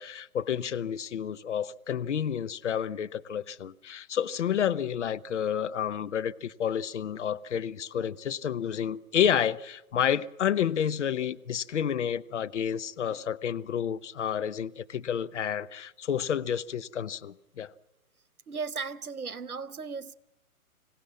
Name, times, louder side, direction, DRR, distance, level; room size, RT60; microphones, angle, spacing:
voice 1, 0.0-17.7, left 9 dB, 55° left, 0.8 m, -30 dB
voice 2, 18.5-20.1, right 5 dB, 85° right, 1.0 m, -36 dB
26.0 x 16.0 x 7.4 m
figure-of-eight pair, 130°, 43 cm